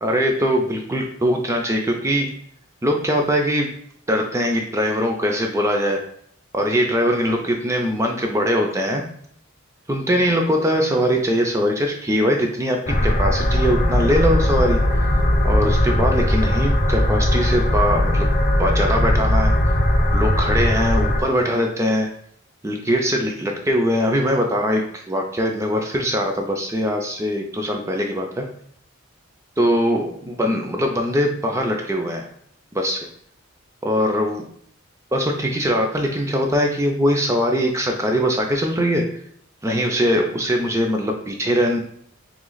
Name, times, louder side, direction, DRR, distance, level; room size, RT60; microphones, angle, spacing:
voice 1, 0.0-2.3 2.8-3.7 4.1-6.0 6.5-9.1 9.9-18.3 18.6-19.5 20.1-22.1 22.6-28.5 29.6-32.3 32.7-33.1 33.8-34.4 35.1-39.1 39.6-41.8, equal, 15° right, 2 dB, 0.4 m, -21 dB
sound 1, 12.9-21.2, left 1 dB, 40° left, 0.7 m, -19 dB
3.2 x 3.1 x 3.8 m, 0.65 s
head